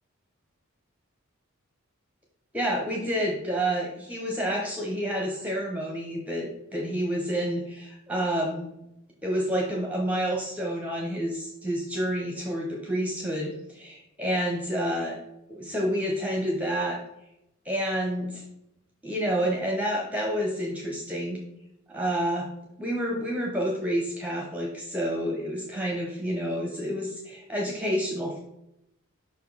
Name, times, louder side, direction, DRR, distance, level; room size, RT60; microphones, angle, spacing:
voice 1, 2.5-8.7 9.2-15.2 15.5-17.0 17.7-18.4 19.0-21.4 21.9-22.5 22.8-28.4, equal, 5° right, -1 dB, 0.8 m, -29 dB
5.5 x 5.0 x 4.0 m, 0.84 s
head